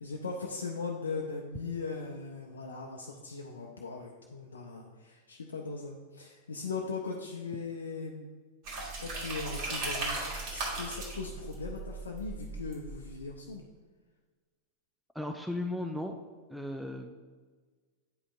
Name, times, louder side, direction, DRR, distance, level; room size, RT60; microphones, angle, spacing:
voice 1, 0.0-8.3 9.0-10.2 10.5-13.6, left 4 dB, 70° left, 0 dB, 0.5 m, -39 dB
sound 1, 8.6-13.3, right 3 dB, 45° right, 1.6 m, -37 dB
voice 2, 15.1-16.2 16.5-17.1, left 1 dB, ahead, 3 dB, 0.4 m, -36 dB
8.6 x 5.1 x 2.5 m, 1.4 s
figure-of-eight pair, 90°, 0 cm